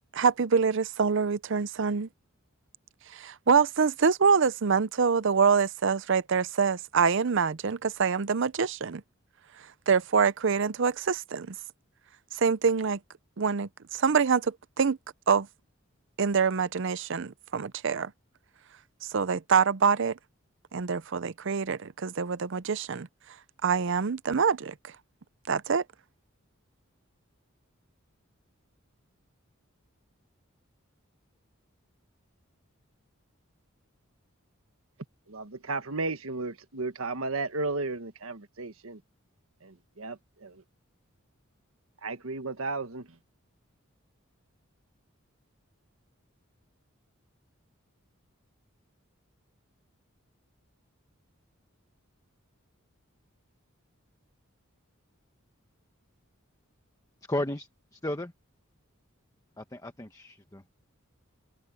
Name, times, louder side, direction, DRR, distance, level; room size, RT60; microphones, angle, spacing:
voice 1, 0.1-2.1 3.1-9.0 9.9-11.6 12.3-13.0 13.4-15.0 15.3-15.5 16.2-18.1 19.0-20.2 20.7-23.1 23.6-24.7 25.5-25.8, right 5 dB, 60° right, 0.6 m, -25 dB
voice 2, 35.3-39.0 39.6-40.5 42.0-43.0, right 3 dB, 80° right, 1.5 m, -34 dB
voice 3, 57.3-58.3 59.6-60.6, left 1 dB, 15° left, 1.1 m, -34 dB
open air
head